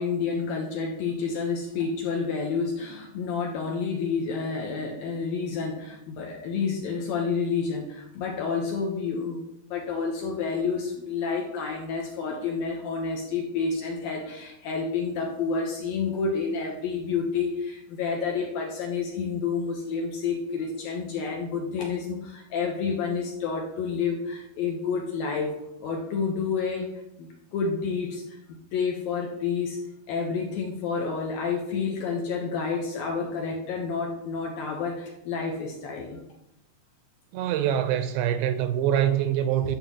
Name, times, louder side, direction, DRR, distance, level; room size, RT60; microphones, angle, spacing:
voice 1, 0.0-9.4 9.7-25.5 25.8-26.9 27.2-28.4 28.7-29.8 30.1-36.2 38.9-39.1, left 5 dB, 70° left, 2.3 m, -29 dB
voice 2, 37.3-39.8, right 10 dB, 85° right, 2.7 m, -24 dB
11.0 x 3.8 x 7.4 m
omnidirectional pair, 5.3 m